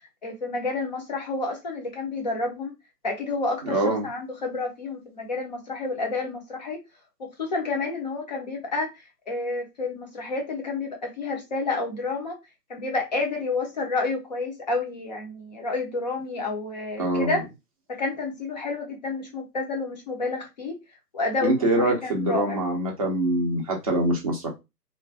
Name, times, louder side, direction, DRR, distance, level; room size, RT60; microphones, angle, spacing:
voice 1, 0.0-2.7 3.0-3.8 4.0-6.8 7.2-12.4 12.7-17.4 17.9-20.8 21.1-22.6, left 3 dB, 25° left, 0.6 m, -30 dB
voice 2, 3.6-4.1 17.0-17.4 21.4-24.5, right 1 dB, 20° right, 0.6 m, -24 dB
2.5 x 2.1 x 3.3 m
figure-of-eight pair, 135°, 50 cm